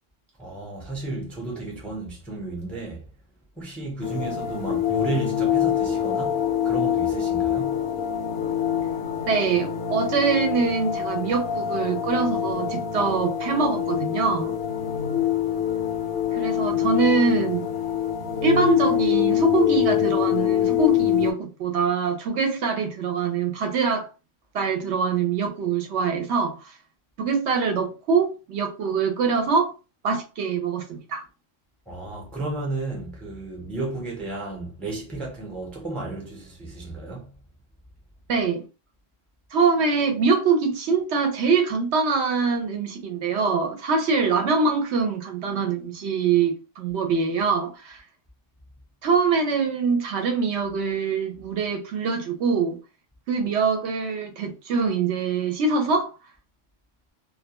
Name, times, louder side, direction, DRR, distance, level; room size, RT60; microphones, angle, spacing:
voice 1, 0.4-3.1 3.6-7.8 31.9-37.3, right 2 dB, ahead, 0.5 m, -33 dB
sound 1, 4.0-21.3, left 10 dB, 60° left, 0.7 m, -25 dB
voice 2, 9.3-14.5 16.3-17.7 18.4-24.1 24.5-26.7 27.2-29.7 30.0-31.2 38.3-38.6 39.5-48.0 49.0-52.8 53.3-56.1, right 5 dB, 70° right, 0.8 m, -24 dB
2.2 x 2.1 x 2.8 m
omnidirectional pair, 1.3 m